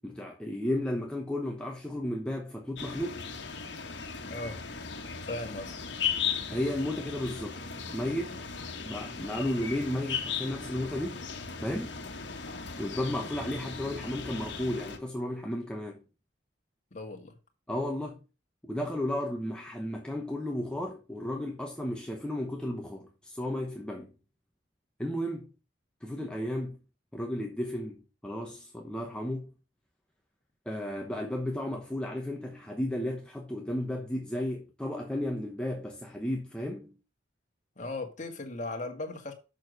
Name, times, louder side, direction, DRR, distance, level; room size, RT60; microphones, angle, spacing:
voice 1, 0.0-3.3 6.5-7.6 7.9-8.4 8.8-11.2 11.6-12.0 12.8-16.0 17.7-18.2 18.6-24.1 25.0-25.5 26.0-26.8 27.1-29.5 30.7-36.9, left 1 dB, 5° left, 1.0 m, -33 dB
sound 1, 2.8-15.0, left 6 dB, 70° left, 1.5 m, -37 dB
voice 2, 4.3-4.6 5.3-5.7 16.9-17.4 37.8-39.3, left 2 dB, 40° left, 1.8 m, -37 dB
7.2 x 6.4 x 5.3 m
head